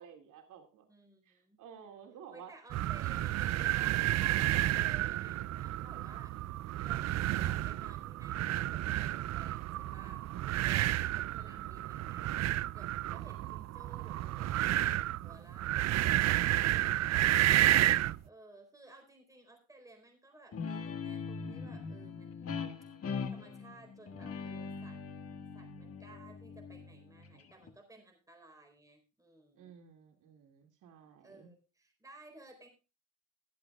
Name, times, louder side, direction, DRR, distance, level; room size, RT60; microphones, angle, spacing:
voice 1, 0.0-0.8 1.3-2.5 11.3-12.0 29.6-31.5, right 8 dB, 85° right, 4 dB, 2.4 m, -54 dB
voice 2, 0.9-1.6 2.3-6.4 6.8-10.2 10.6-12.3 12.7-15.9 18.2-22.6 23.3-25.0 25.5-29.7 31.2-32.7, right 2 dB, 10° right, 3 dB, 4.2 m, -57 dB
sound 1, 2.7-18.2, right 14 dB, 60° right, 0.4 m, -31 dB
Guitar, 20.5-27.7, left 5 dB, 50° left, 1.7 m, -41 dB
22.5 x 8.1 x 2.4 m, 0.31 s
cardioid pair, 125°, 30 cm